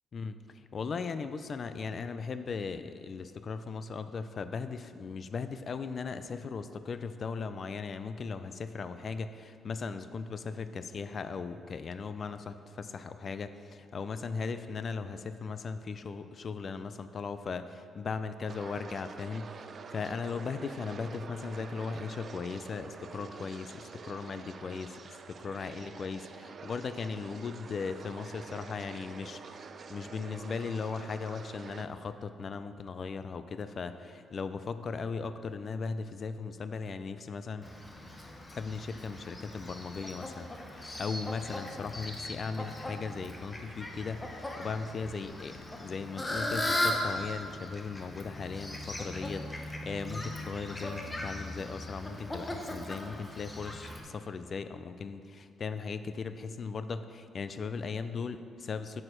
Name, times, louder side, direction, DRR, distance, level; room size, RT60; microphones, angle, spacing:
voice 1, 0.1-19.5 19.9-25.0 25.3-29.4 29.9-37.7 38.5-40.5 40.7-59.0, left 5 dB, 45° left, 11 dB, 0.3 m, -38 dB
sound 1, 18.5-31.9, right 5 dB, 45° right, 0.4 m, -47 dB
Fowl, 37.6-54.0, left 1 dB, 20° left, 0.9 m, -38 dB
6.5 x 6.4 x 4.4 m, 2.4 s
cardioid pair, 90°, 0 cm